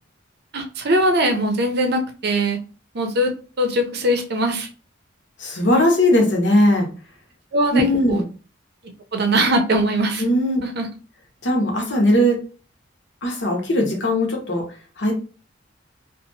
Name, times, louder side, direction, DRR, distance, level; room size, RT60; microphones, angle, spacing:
voice 1, 0.5-2.6 2.9-3.3 3.6-4.7 7.5-8.2 9.1-10.2 10.6-10.9, right 1 dB, 55° right, 5 dB, 0.6 m, -21 dB
voice 2, 5.4-6.9 7.7-8.3 10.2-10.6 11.4-12.4 13.2-14.6 15.0-15.1, left 1 dB, 65° left, 0 dB, 1.0 m, -19 dB
2.8 x 2.4 x 2.6 m, 0.37 s
head